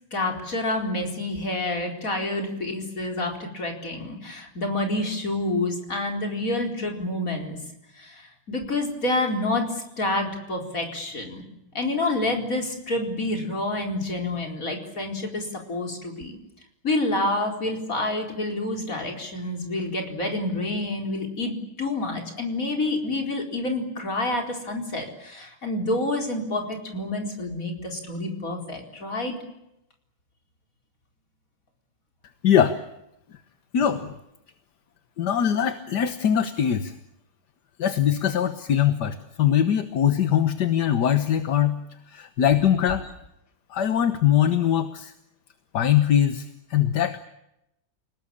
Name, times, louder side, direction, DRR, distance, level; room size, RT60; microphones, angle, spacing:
voice 1, 0.1-7.6 8.0-11.4 11.7-16.3 16.8-29.4, left 2 dB, 35° left, 2 dB, 4.9 m, -28 dB
voice 2, 32.4-32.8 33.7-34.1 35.2-36.9 37.8-41.8 42.1-43.0 43.7-45.1 45.7-47.2, left 9 dB, 55° left, 9 dB, 1.6 m, -22 dB
29.0 x 19.5 x 8.7 m, 0.85 s
omnidirectional pair, 2.4 m